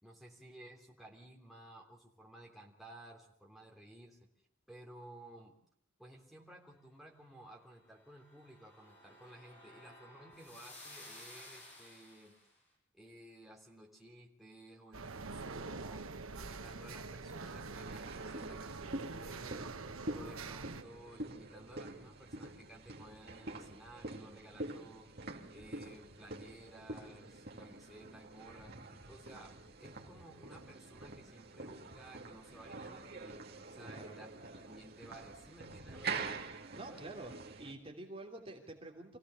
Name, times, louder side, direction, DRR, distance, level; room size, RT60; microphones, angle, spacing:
voice 1, 0.0-4.2 4.7-5.6 6.0-12.4 12.9-16.0 16.3-19.8 20.1-25.1 25.5-28.8 29.1-33.4 33.7-34.3 34.7-36.5, right 1 dB, ahead, -2 dB, 3.3 m, -56 dB
sound 1, 7.9-12.5, left 1 dB, 30° left, 7.6 m, -55 dB
sound 2, 14.9-20.8, right 4 dB, 75° right, 1.1 m, -45 dB
sound 3, 17.8-37.7, right 3 dB, 45° right, 2.5 m, -46 dB
voice 2, 33.8-34.2 36.7-39.2, right 2 dB, 25° right, 1 dB, 2.9 m, -48 dB
26.5 x 16.5 x 7.0 m, 0.65 s
head